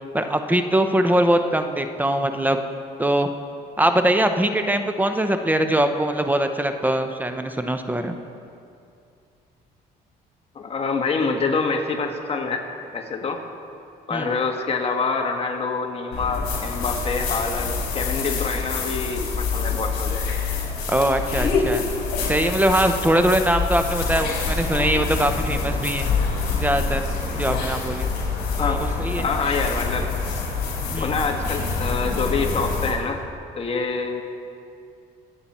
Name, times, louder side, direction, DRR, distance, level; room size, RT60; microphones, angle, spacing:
voice 1, 0.1-2.6 3.0-3.3 3.8-8.2 14.1-14.3 20.9-21.8 22.3-26.1 26.5-27.0 27.4-28.1 28.6-29.2 30.9-31.2, right 1 dB, 10° right, 7 dB, 0.8 m, -22 dB
voice 2, 10.5-12.6 12.9-13.4 14.1-20.2 28.6-28.8 29.2-30.1 31.0-33.2 33.6-34.2, left 4 dB, 35° left, 3 dB, 1.5 m, -26 dB
sound 1, 16.1-32.9, left 4 dB, 65° left, 4.1 m, -26 dB
25.5 x 8.7 x 4.3 m, 2.5 s
cardioid pair, 110°, 17 cm